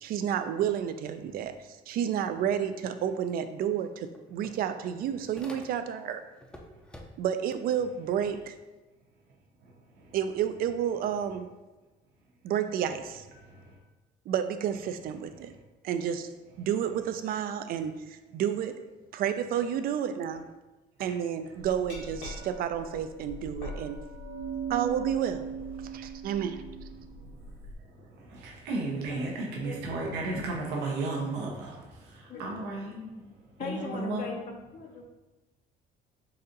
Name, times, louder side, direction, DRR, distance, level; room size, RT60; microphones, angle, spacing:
voice 1, 0.0-1.5 1.9-6.2 7.2-8.5 10.1-11.5 12.4-13.2 14.3-15.5 15.8-16.3 16.6-18.8 19.1-20.5 21.0-24.0 24.7-25.5 25.8-26.6, right 9 dB, 60° right, 9 dB, 0.4 m, -30 dB
sound 1, 3.4-3.5 3.8-6.0 6.4-7.4, left 1 dB, 5° left, 0.5 m, -49 dB
Glass, 21.7-27.7, right 5 dB, 80° left, 1.5 m, -39 dB
voice 2, 28.4-31.7 32.4-32.9 33.6-34.2, right 3 dB, 90° right, -1 dB, 0.8 m, -33 dB
voice 3, 32.3-33.3 33.6-35.0, left 4 dB, 45° left, 2 dB, 0.7 m, -40 dB
4.1 x 2.5 x 3.9 m, 1.1 s
cardioid pair, 110°, 17 cm